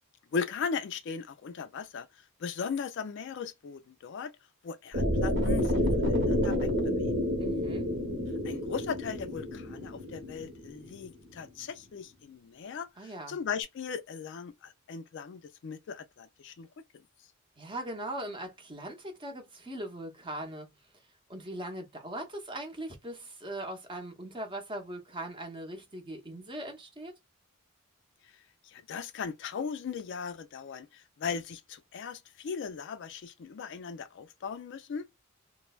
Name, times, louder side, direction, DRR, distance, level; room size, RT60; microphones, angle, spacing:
voice 1, 0.3-2.1 2.4-4.3 4.6-6.7 7.0-7.1 8.4-16.7 28.6-35.1, left 6 dB, 55° left, 0.3 m, -38 dB
sound 1, 4.9-11.0, left 1 dB, 55° right, 1.0 m, -29 dB
voice 2, 7.4-7.9 13.0-13.4 17.6-20.7 21.3-27.1, right 1 dB, 25° right, 0.7 m, -40 dB
3.1 x 2.0 x 2.2 m
head